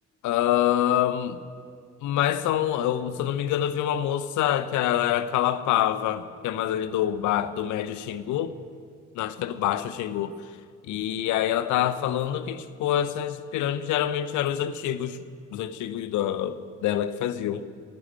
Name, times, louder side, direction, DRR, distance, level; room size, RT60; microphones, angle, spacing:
voice 1, 0.2-1.4 2.0-8.5 9.1-10.4 10.9-15.2 15.5-17.6, left 11 dB, 55° left, 0.9 m, -26 dB
15.5 x 11.0 x 7.9 m
figure-of-eight pair, 45°, 36 cm